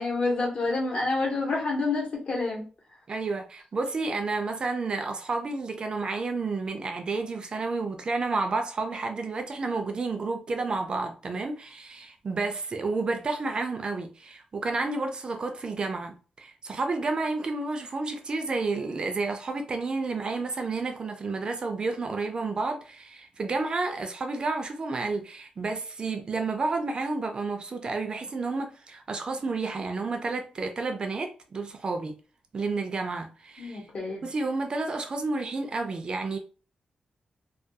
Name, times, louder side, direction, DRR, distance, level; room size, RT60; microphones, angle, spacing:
voice 1, 0.0-2.6 33.6-34.2, left 3 dB, 45° left, 0.8 m, -28 dB
voice 2, 3.1-32.2 32.5-33.8 34.2-36.4, right 3 dB, 35° right, 0.3 m, -30 dB
2.2 x 2.2 x 2.7 m
wide cardioid pair, 175°, 3 cm